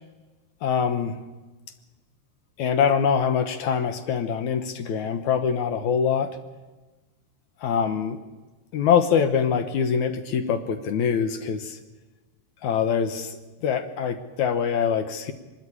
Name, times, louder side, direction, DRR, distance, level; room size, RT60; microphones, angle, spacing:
voice 1, 0.6-1.2 2.6-6.4 7.6-8.2 8.7-11.8 12.6-15.3, left 7 dB, 70° left, 10 dB, 1.9 m, -24 dB
22.5 x 12.5 x 9.9 m, 1.2 s
omnidirectional pair, 4.5 m